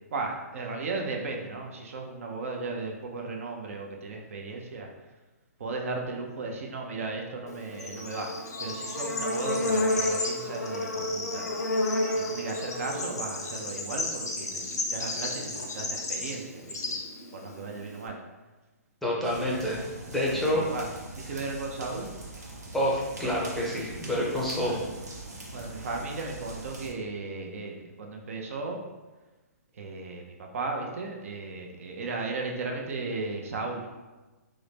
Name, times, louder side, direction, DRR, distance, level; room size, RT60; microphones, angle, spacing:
voice 1, 0.1-4.9 5.6-11.5 12.1-17.0 17.3-18.2 20.5-20.9 21.2-22.1 24.6-24.8 25.5-28.8 29.7-34.0, right 3 dB, 55° right, 1 dB, 0.6 m, -36 dB
Bird / Insect, 7.5-18.1, left 2 dB, 85° left, 0.7 m, -31 dB
voice 2, 19.0-19.8 20.1-20.6 22.7-24.8, equal, ahead, -5 dB, 0.6 m, -28 dB
sound 1, 19.2-26.9, right 2 dB, 85° right, 0.9 m, -42 dB
3.6 x 2.1 x 3.2 m, 1.2 s
hypercardioid pair, 140°, 9 cm